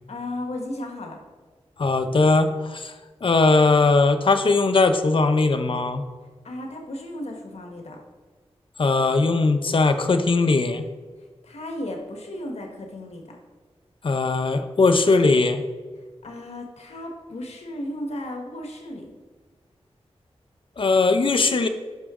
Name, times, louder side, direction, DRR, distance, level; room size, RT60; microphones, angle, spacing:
voice 1, 0.1-1.2 6.4-8.0 11.4-13.4 16.2-19.1, left 1 dB, 75° left, 2 dB, 1.5 m, -34 dB
voice 2, 1.8-2.9 3.2-6.0 8.8-10.8 14.0-15.6 20.8-21.7, left 3 dB, 50° left, 8 dB, 0.7 m, -19 dB
10.5 x 5.8 x 3.7 m, 1.4 s
wide cardioid pair, 65°, 11 cm